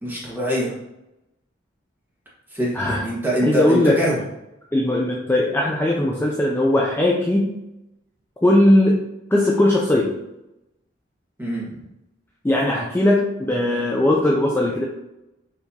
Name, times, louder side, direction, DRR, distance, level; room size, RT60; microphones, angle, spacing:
voice 1, 0.0-0.7 2.5-4.2 11.4-11.7, equal, 10° right, -7 dB, 1.5 m, -23 dB
voice 2, 3.4-4.0 4.7-7.6 8.4-9.0 9.3-10.1 12.4-14.9, left 1 dB, 10° left, -2 dB, 0.4 m, -19 dB
4.5 x 3.4 x 2.7 m, 0.90 s
head